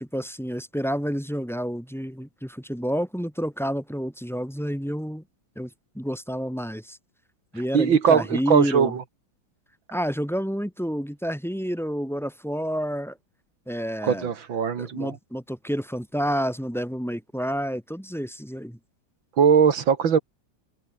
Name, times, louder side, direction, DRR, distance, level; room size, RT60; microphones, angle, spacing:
voice 1, 0.0-5.2 5.6-5.7 6.0-7.0 7.5-9.0 9.9-13.2 13.7-14.3 14.8-18.8, equal, ahead, 7.0 m, -29 dB
voice 2, 7.7-9.0 14.0-15.1 19.4-20.2, right 7 dB, 85° right, 2.8 m, -20 dB
omnidirectional pair, 2.1 m